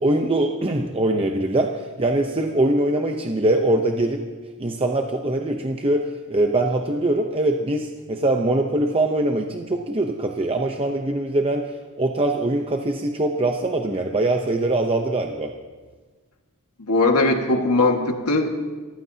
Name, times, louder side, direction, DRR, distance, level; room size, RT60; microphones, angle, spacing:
voice 1, 0.0-4.2 4.6-15.5, right 1 dB, 25° right, 3 dB, 0.8 m, -22 dB
voice 2, 16.8-18.5, left 2 dB, 90° left, 3 dB, 1.8 m, -19 dB
29.0 x 15.0 x 2.8 m, 1.4 s
head